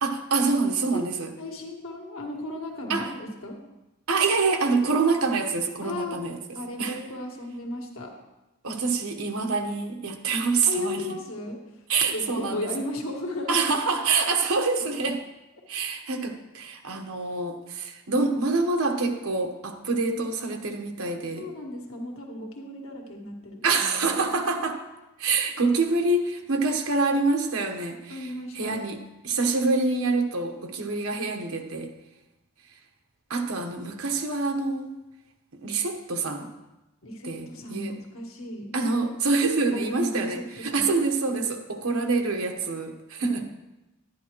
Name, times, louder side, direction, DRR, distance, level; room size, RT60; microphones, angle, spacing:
voice 1, 0.0-1.3 2.9-3.1 4.1-6.4 6.8-7.0 8.6-11.0 11.9-12.7 13.5-15.2 15.7-21.5 23.6-24.8 25.2-28.3 28.5-29.0 29.2-31.9 33.3-34.9 35.6-36.5 37.2-37.9 38.7-43.4, right 3 dB, 90° right, 4 dB, 1.1 m, -26 dB
voice 2, 1.4-3.6 5.8-6.2 6.5-8.1 10.7-11.8 12.1-13.9 21.1-24.1 28.1-28.9 37.0-38.7 39.7-40.9 43.2-43.4, left 1 dB, 80° left, 0 dB, 1.7 m, -35 dB
11.5 x 10.5 x 3.0 m, 0.99 s
head